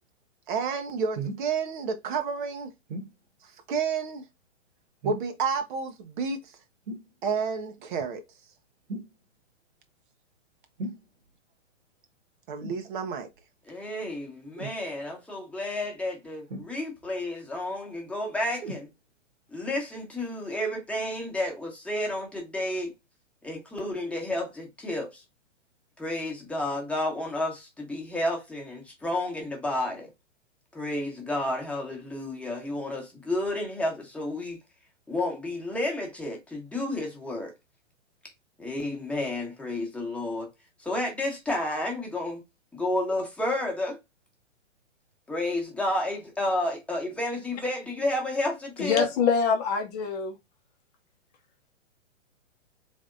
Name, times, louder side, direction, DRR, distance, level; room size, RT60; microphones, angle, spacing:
voice 1, 0.5-2.7 3.7-4.2 5.0-6.4 7.2-8.2 12.5-13.3, right 5 dB, 40° right, 0.8 m, -30 dB
sound 1, 1.1-1.5 2.9-3.1 5.0-5.4 6.9-7.1 8.9-9.1 10.8-11.0 12.6-12.9 14.6-14.8 16.5-17.1 18.6-18.9 19.7-19.8, right 2 dB, 75° right, 1.5 m, -36 dB
voice 2, 13.7-18.9 19.5-22.9 23.4-25.2 26.0-30.1 30.7-34.6 35.1-37.5 38.6-40.5 40.8-42.4 42.7-44.0 45.3-49.1, left 1 dB, 5° left, 1.1 m, -31 dB
voice 3, 48.8-50.3, left 6 dB, 30° left, 0.7 m, -25 dB
3.5 x 3.5 x 2.5 m
hypercardioid pair, 130°, 38 cm